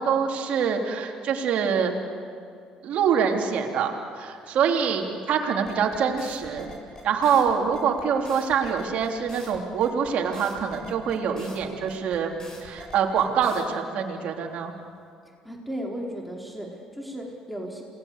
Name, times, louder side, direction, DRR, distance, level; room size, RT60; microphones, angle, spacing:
voice 1, 0.0-1.9 2.8-6.7 7.0-14.7, right 7 dB, 65° right, 2 dB, 3.3 m, -25 dB
sound 1, 5.6-13.6, left 2 dB, 25° left, 7.9 m, -45 dB
voice 2, 15.4-17.8, equal, ahead, -1 dB, 4.6 m, -35 dB
28.0 x 20.0 x 8.2 m, 2.4 s
supercardioid pair, 65°, 2 cm